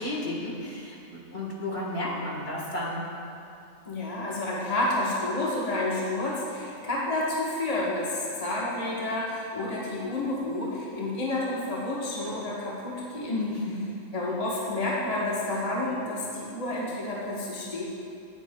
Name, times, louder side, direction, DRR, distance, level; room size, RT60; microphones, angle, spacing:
voice 1, 0.0-3.1 13.3-13.9, left 1 dB, 40° left, -3 dB, 1.6 m, -32 dB
voice 2, 3.9-13.4 14.1-17.8, left 2 dB, 25° left, -5 dB, 1.1 m, -30 dB
17.0 x 8.2 x 2.2 m, 2.5 s
omnidirectional pair, 1.6 m